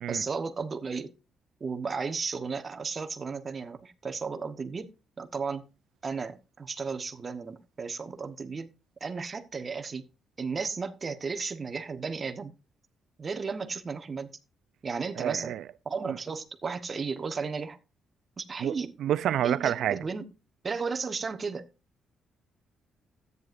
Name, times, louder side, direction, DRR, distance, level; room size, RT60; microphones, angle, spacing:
voice 1, 0.1-1.1 1.6-5.7 6.0-8.7 9.0-10.0 10.4-12.5 13.2-14.3 14.8-15.6 15.8-17.8 18.4-18.9 19.4-20.3 20.6-21.7, right 5 dB, 35° right, 1.1 m, -34 dB
voice 2, 15.2-15.6 16.1-16.2 18.6-18.7 19.0-20.0, right 11 dB, 75° right, 0.5 m, -28 dB
13.5 x 9.5 x 2.5 m
cardioid pair, 90°, 0 cm